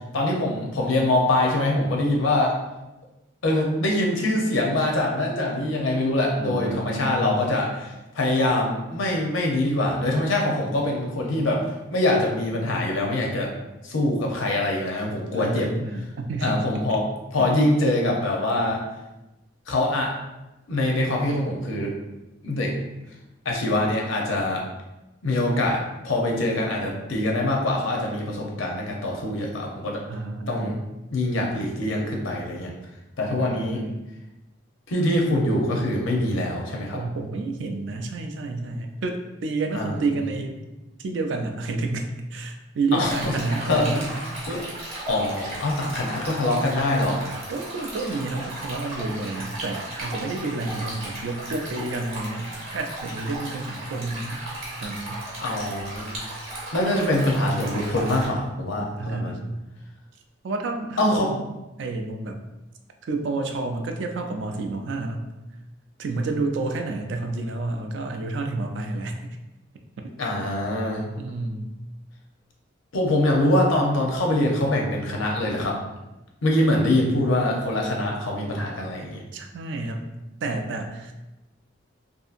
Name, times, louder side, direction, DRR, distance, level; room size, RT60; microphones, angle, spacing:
voice 1, 0.1-2.6 3.4-13.5 13.8-15.7 16.4-18.8 19.7-20.1 20.7-21.9 22.4-22.7 23.5-24.7 25.2-30.0 30.5-30.7 31.1-32.7 33.2-33.8 34.9-37.0 39.7-39.9 42.9-43.3 43.7-44.0 44.5-44.7 45.1-47.2 55.4-56.2 56.7-59.4 61.0-61.3 70.2-71.1 72.9-75.8 76.4-79.2, left 1 dB, 75° left, -1 dB, 0.6 m, -24 dB
voice 2, 6.4-7.5 15.3-16.6 16.9-17.0 17.4-17.5 30.1-30.8 33.2-34.0 36.9-40.6 41.0-44.2 47.5-54.4 54.8-55.3 57.0-57.1 59.0-59.6 60.4-61.4 61.8-62.4 63.0-65.3 66.0-69.2 70.0-70.1 71.2-71.8 79.3-80.1 80.4-81.1, right 3 dB, 60° right, 4 dB, 0.3 m, -30 dB
Stream, 43.0-58.3, right 1 dB, 30° right, 0.8 m, -35 dB
2.7 x 2.5 x 2.4 m, 1.0 s
head